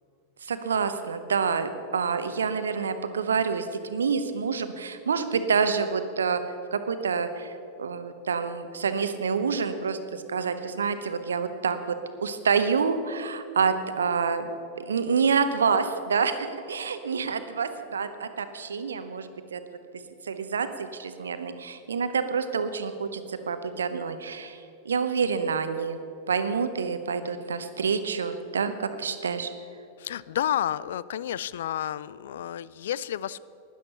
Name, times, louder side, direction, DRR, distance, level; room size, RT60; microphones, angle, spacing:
voice 1, 0.4-6.4 6.7-7.5 7.8-11.8 12.2-14.5 14.8-19.6 20.2-24.6 24.8-26.0 26.3-29.5, right 5 dB, 70° right, 10 dB, 0.9 m, -27 dB
voice 2, 30.0-33.4, left 11 dB, 60° left, 19 dB, 0.3 m, -30 dB
12.0 x 10.5 x 6.8 m, 2.6 s
figure-of-eight pair, 90°, 0 cm